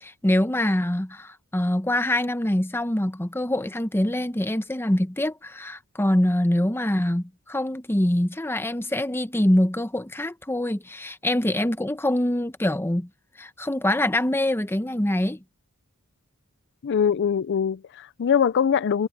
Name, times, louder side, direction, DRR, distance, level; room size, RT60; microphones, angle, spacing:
voice 1, 0.0-13.1 13.4-15.4, left 1 dB, 10° left, 0.9 m, -24 dB
voice 2, 16.8-19.1, left 7 dB, 55° left, 0.4 m, -22 dB
head